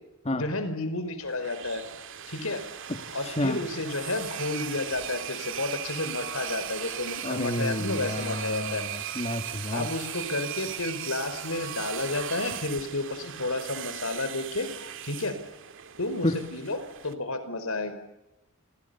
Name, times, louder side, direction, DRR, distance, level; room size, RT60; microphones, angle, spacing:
voice 1, 0.3-1.8 2.3-2.6 3.1-8.8 9.7-14.7 15.0-15.4 16.0-17.9, left 2 dB, 80° left, 11 dB, 5.1 m, -31 dB
sound 1, 1.2-17.1, right 9 dB, 65° right, 2.3 m, -38 dB
voice 2, 2.9-3.6 7.2-9.9 16.2-16.4, left 1 dB, 30° left, 7 dB, 1.9 m, -30 dB
30.0 x 27.0 x 7.1 m, 0.93 s
head